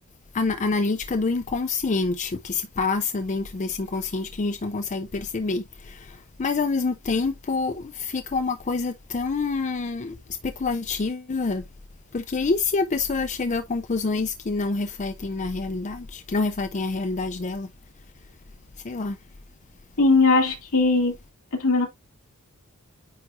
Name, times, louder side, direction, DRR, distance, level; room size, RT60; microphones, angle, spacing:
voice 1, 0.3-11.7 12.1-17.7 18.8-19.2, left 3 dB, 35° left, 0.5 m, -27 dB
voice 2, 20.0-21.1 21.6-21.9, left 3 dB, 70° left, 2.3 m, -19 dB
9.2 x 4.2 x 2.4 m
head